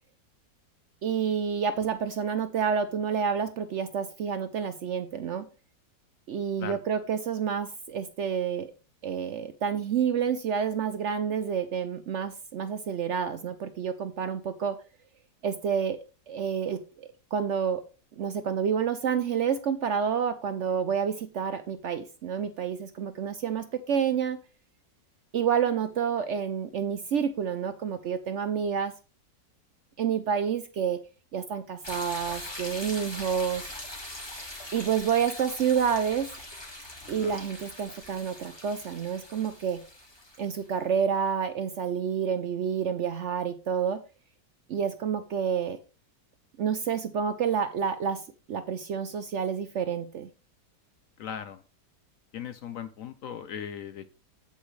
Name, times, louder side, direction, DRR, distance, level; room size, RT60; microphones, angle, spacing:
voice 1, 1.0-5.4 6.3-8.7 9.0-14.8 15.4-16.0 16.3-17.8 18.2-24.4 25.3-28.9 30.0-31.0 31.3-33.7 34.7-36.3 37.1-39.8 40.4-44.0 44.7-45.8 46.6-48.2 48.5-50.3, right 7 dB, 70° right, 10 dB, 0.6 m, -29 dB
sound 1, 31.8-40.7, left 1 dB, 15° left, 1.6 m, -42 dB
voice 2, 37.0-37.4 51.2-51.6 52.3-54.1, left 8 dB, 70° left, 12 dB, 0.8 m, -38 dB
8.3 x 8.2 x 3.1 m, 0.33 s
omnidirectional pair, 1.9 m